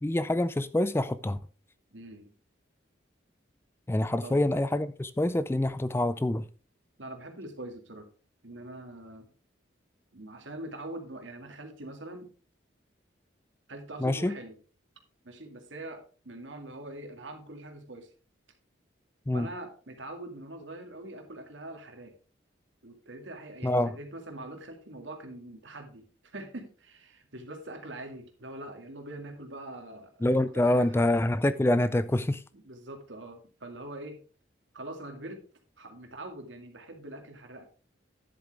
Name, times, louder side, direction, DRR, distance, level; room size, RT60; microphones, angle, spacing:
voice 1, 0.0-1.4 3.9-6.5 14.0-14.3 19.3-19.5 23.6-24.0 30.2-32.4, left 1 dB, 15° left, 0.3 m, -26 dB
voice 2, 1.9-2.3 4.2-4.4 7.0-8.1 8.4-9.3 10.1-12.3 13.7-14.5 15.2-18.1 19.3-22.1 22.8-30.3 30.5-31.0 32.5-34.2 34.7-35.5 35.8-37.6, right 1 dB, 85° right, 2.0 m, -43 dB
10.5 x 7.7 x 3.3 m
head